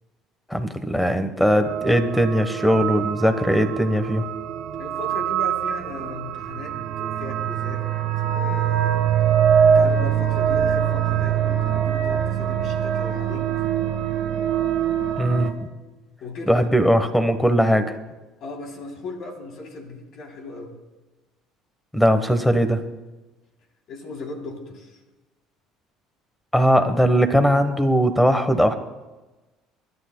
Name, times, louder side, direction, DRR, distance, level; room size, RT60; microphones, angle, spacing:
voice 1, 0.5-4.2 15.2-15.5 16.5-18.0 21.9-22.8 26.5-28.7, equal, 5° left, 9 dB, 1.1 m, -19 dB
sound 1, 1.6-15.5, right 8 dB, 70° right, 1.5 m, -23 dB
voice 2, 4.8-7.8 8.2-9.0 9.6-13.5 16.2-16.7 18.4-20.8 23.9-25.0, left 3 dB, 60° left, 2 dB, 3.2 m, -37 dB
26.0 x 11.5 x 2.2 m, 1.1 s
supercardioid pair, 110°, 0 cm